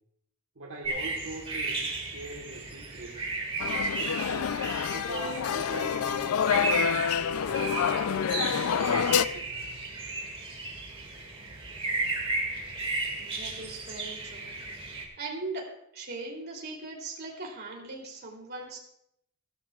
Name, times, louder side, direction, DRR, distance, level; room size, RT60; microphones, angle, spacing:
voice 1, 0.5-3.2 3.7-4.5 4.9-7.1 7.5-9.5, right 3 dB, 65° right, -1 dB, 1.4 m, -43 dB
sound 1, 0.8-15.0, right 3 dB, 25° right, 2.0 m, -34 dB
sound 2, 3.6-9.3, left 7 dB, 70° left, 0.4 m, -27 dB
voice 2, 13.2-14.6 14.9-15.7 15.9-18.8, right 3 dB, 50° right, -1 dB, 3.0 m, -40 dB
16.5 x 12.5 x 2.4 m, 0.77 s
head